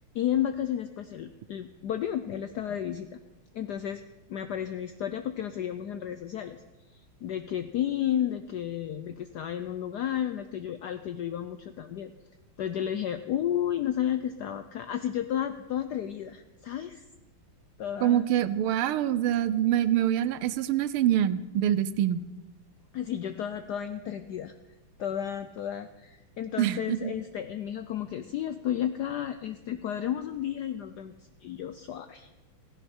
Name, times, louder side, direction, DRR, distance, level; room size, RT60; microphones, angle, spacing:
voice 1, 0.1-3.2 3.5-4.0 4.3-6.6 6.9-12.1 12.6-17.0 17.8-18.3 22.9-24.5 25.0-31.1 31.4-32.3, left 10 dB, 80° left, 10 dB, 0.9 m, -32 dB
voice 2, 18.0-22.2 26.6-27.1, right 11 dB, 80° right, 15 dB, 1.5 m, -25 dB
16.0 x 15.5 x 4.4 m, 1.1 s
omnidirectional pair, 2.4 m